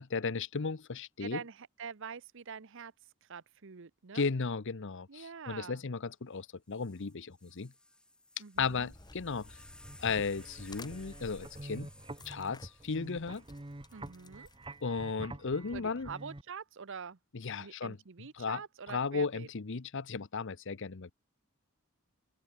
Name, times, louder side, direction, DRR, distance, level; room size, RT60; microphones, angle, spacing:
voice 1, 0.0-1.4 4.1-7.7 8.6-9.6 10.0-11.9 12.3-13.4 14.8-16.1 17.3-18.0 18.4-18.6 18.9-21.1, left 4 dB, 60° left, 0.8 m, -35 dB
voice 2, 1.2-2.9 3.2-4.3 5.1-5.8 8.4-8.9 13.9-14.5 15.7-17.2 17.6-19.5, right 6 dB, 60° right, 0.8 m, -45 dB
sound 1, 6.3-6.4 6.7-14.1 15.0-15.4, left 1 dB, 5° left, 1.3 m, -58 dB
sound 2, 8.5-14.9, left 2 dB, 20° left, 2.2 m, -55 dB
sound 3, 9.6-16.4, right 2 dB, 25° right, 1.1 m, -47 dB
open air
head